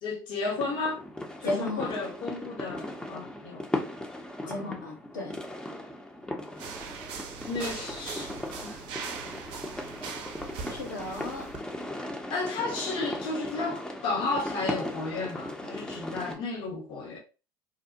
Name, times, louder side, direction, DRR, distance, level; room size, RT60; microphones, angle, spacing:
voice 1, 0.0-1.0 1.4-3.7 4.4-4.8 7.5-8.3 8.6-8.8 12.3-17.2, left 3 dB, 55° left, 0.8 m, -33 dB
sound 1, 0.6-16.4, left 1 dB, 10° left, 0.5 m, -38 dB
voice 2, 1.4-1.9 4.5-5.4 10.7-11.5, left 2 dB, 85° left, 0.9 m, -34 dB
sound 2, 6.6-11.6, right 5 dB, 60° right, 0.5 m, -40 dB
2.7 x 2.1 x 2.5 m
hypercardioid pair, 65°, 10 cm